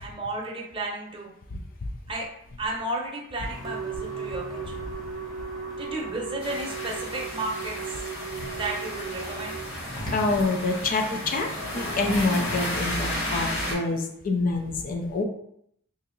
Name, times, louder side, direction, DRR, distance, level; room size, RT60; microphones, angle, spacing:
voice 1, 0.0-1.3 2.1-2.3 2.6-4.8 5.8-7.8 8.5-9.6, right 2 dB, 25° right, -2 dB, 0.8 m, -33 dB
sound 1, 3.4-12.9, left 1 dB, 20° left, 1.0 m, -43 dB
Wind instrument woodwind instrument, 3.6-9.7, right 6 dB, 80° right, 0.4 m, -37 dB
sound 2, 6.4-13.7, left 1 dB, 70° left, 1.3 m, -33 dB
voice 2, 10.1-15.2, left 3 dB, 45° left, 4 dB, 0.4 m, -26 dB
2.8 x 2.7 x 3.8 m, 0.73 s
head